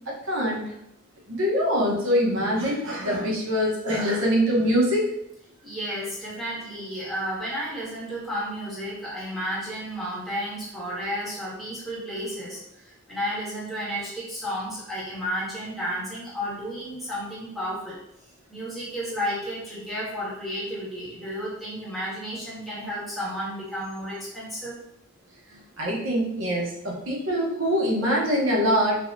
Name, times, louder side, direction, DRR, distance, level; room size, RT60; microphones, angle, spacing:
voice 1, 0.3-0.6 1.3-5.0 25.8-29.0, equal, 90° right, -4 dB, 1.0 m, -23 dB
voice 2, 5.6-18.0 18.5-24.8, equal, ahead, -8 dB, 1.4 m, -32 dB
3.8 x 2.9 x 2.6 m, 0.76 s
head